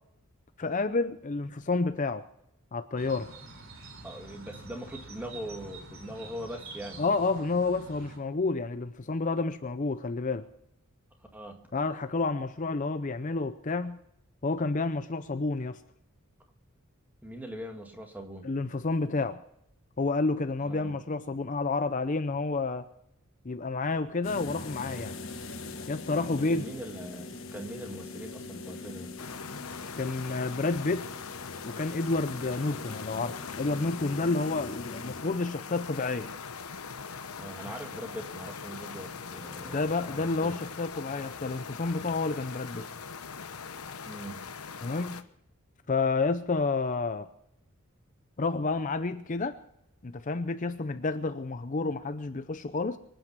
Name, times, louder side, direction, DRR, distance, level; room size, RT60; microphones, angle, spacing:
voice 1, 0.6-2.2 2.7-3.3 7.0-10.5 11.7-14.0 14.4-15.8 18.4-19.4 20.0-22.9 23.4-25.1 25.9-26.7 30.0-31.1 31.6-36.3 39.6-42.9 44.8-45.2 45.9-47.3 48.4-49.6 50.0-53.0, left 3 dB, 35° left, 0.5 m, -30 dB
sound 1, 3.0-8.2, right 2 dB, 65° right, 3.2 m, -47 dB
voice 2, 4.0-7.0 11.3-11.6 17.2-18.5 20.6-21.0 26.3-29.2 37.4-40.6 44.1-44.4, right 1 dB, 10° right, 1.9 m, -41 dB
sound 2, 24.2-35.2, left 3 dB, 60° left, 1.4 m, -42 dB
sound 3, 29.2-45.2, left 5 dB, 80° left, 1.1 m, -41 dB
24.5 x 9.1 x 6.1 m
head